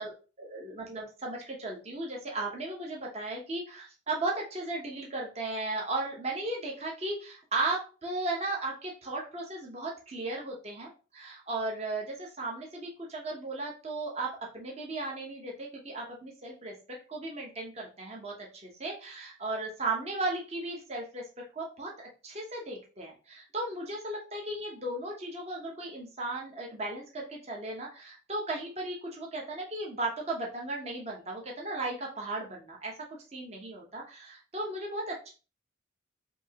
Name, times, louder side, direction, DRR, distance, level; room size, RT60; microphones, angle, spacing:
voice 1, 0.0-16.7 17.1-18.3 18.6-21.2 21.5-32.9 33.3-35.3, right 2 dB, 35° right, -1 dB, 0.9 m, -36 dB
5.4 x 2.8 x 2.8 m, 0.34 s
head